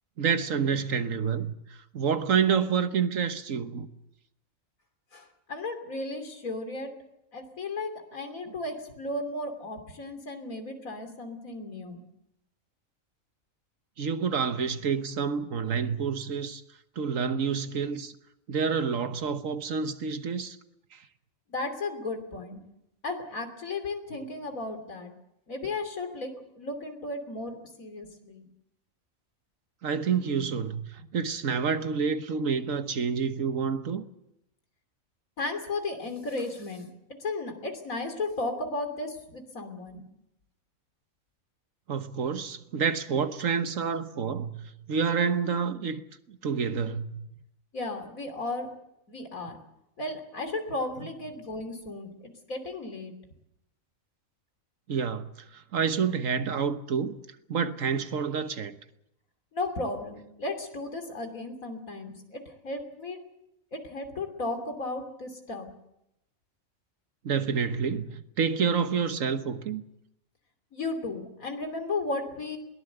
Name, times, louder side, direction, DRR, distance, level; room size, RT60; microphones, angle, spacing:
voice 1, 0.2-3.9 14.0-16.6 17.0-18.1 18.5-20.6 20.9-21.0 29.8-34.0 41.9-46.0 46.3-47.3 54.9-57.2 57.5-58.7 67.2-69.8, right 6 dB, 70° right, 1.5 m, -28 dB
voice 2, 5.1-6.9 7.3-12.0 21.5-22.6 23.0-25.1 25.5-28.4 35.4-36.9 37.2-40.0 47.7-48.7 49.1-49.6 50.0-53.1 59.5-63.2 63.7-65.7 70.7-72.6, left 2 dB, 80° left, 3.4 m, -35 dB
22.0 x 18.0 x 8.0 m
omnidirectional pair, 1.4 m